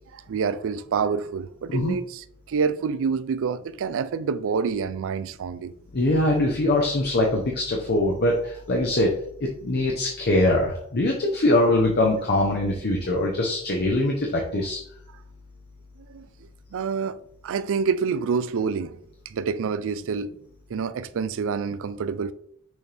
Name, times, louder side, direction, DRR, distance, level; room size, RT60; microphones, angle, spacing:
voice 1, 0.1-5.7 16.1-16.3 16.7-17.2 17.4-18.9 19.3-20.3 20.7-22.3, right 5 dB, 60° right, 0.4 m, -27 dB
voice 2, 5.9-9.1 9.4-14.8, left 1 dB, 45° left, 0.9 m, -22 dB
6.2 x 4.4 x 3.4 m
head